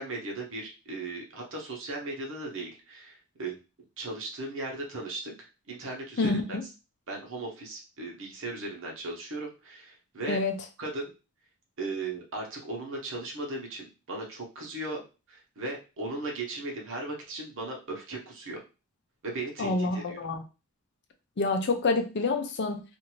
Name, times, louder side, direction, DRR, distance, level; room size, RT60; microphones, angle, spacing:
voice 1, 0.0-3.6 4.0-6.4 7.1-10.4 10.8-11.1 11.8-15.0 15.3-18.6 19.2-20.2, right 2 dB, 60° right, 0 dB, 1.0 m, -37 dB
voice 2, 6.2-6.6 10.3-10.5 19.6-20.4 21.4-22.8, left 3 dB, 50° left, 5 dB, 0.5 m, -27 dB
2.6 x 2.6 x 3.0 m, 0.30 s
head